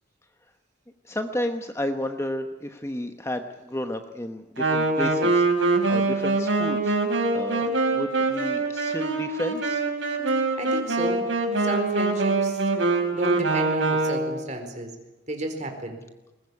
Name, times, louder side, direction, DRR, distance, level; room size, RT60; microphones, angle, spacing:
voice 1, 1.1-7.0 7.3-9.8, left 1 dB, 15° left, 7 dB, 1.0 m, -32 dB
Wind instrument woodwind instrument, 4.6-14.5, right 3 dB, 80° right, 5.0 m, -24 dB
voice 2, 10.6-11.3 11.6-12.6 13.1-14.9 15.3-16.0, right 1 dB, 40° right, 5 dB, 4.3 m, -32 dB
21.0 x 20.5 x 9.7 m, 1.0 s
head